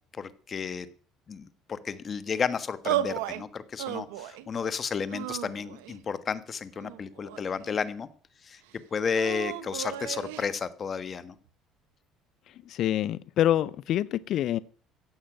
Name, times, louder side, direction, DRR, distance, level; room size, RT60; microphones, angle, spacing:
voice 1, 0.1-0.9 1.3-8.1 8.4-8.6 8.9-11.3, left 6 dB, 40° left, 13 dB, 1.4 m, -32 dB
sound 1, 2.8-3.4 3.8-4.5 5.1-6.0 6.8-7.8 9.1-10.5, right 13 dB, 90° right, 0.9 m, -34 dB
voice 2, 12.7-14.6, left 12 dB, 60° left, 19 dB, 0.5 m, -26 dB
15.0 x 6.5 x 9.0 m, 0.44 s
supercardioid pair, 85°, 0 cm